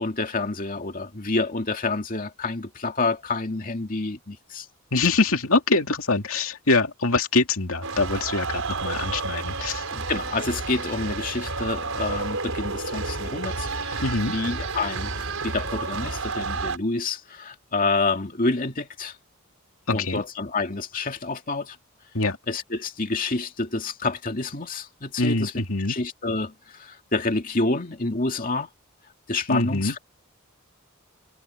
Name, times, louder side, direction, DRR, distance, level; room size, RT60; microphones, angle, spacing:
voice 1, 0.0-4.7 9.9-19.2 19.9-21.8 22.5-28.7 29.3-30.0, left 3 dB, 40° left, 2.4 m, -28 dB
voice 2, 4.9-9.8 14.0-14.3 19.9-20.2 22.1-22.4 25.2-26.0 29.5-29.9, left 3 dB, 70° left, 2.6 m, -24 dB
sound 1, 7.8-16.8, right 3 dB, 70° right, 6.0 m, -30 dB
head